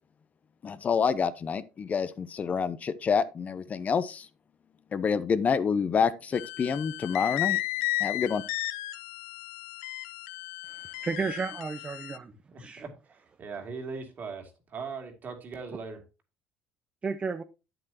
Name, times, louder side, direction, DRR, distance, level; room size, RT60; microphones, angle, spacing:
voice 1, 0.6-4.3 4.9-7.6 8.0-8.4, left 6 dB, 35° left, 0.6 m, -27 dB
sound 1, 6.3-12.2, left 17 dB, 85° left, 0.4 m, -34 dB
voice 2, 10.6-12.3 12.6-12.8 17.0-17.4, right 5 dB, 30° right, 0.6 m, -33 dB
voice 3, 12.5-16.0, right 4 dB, 45° right, 2.4 m, -40 dB
8.6 x 7.8 x 2.8 m
supercardioid pair, 80°, 4 cm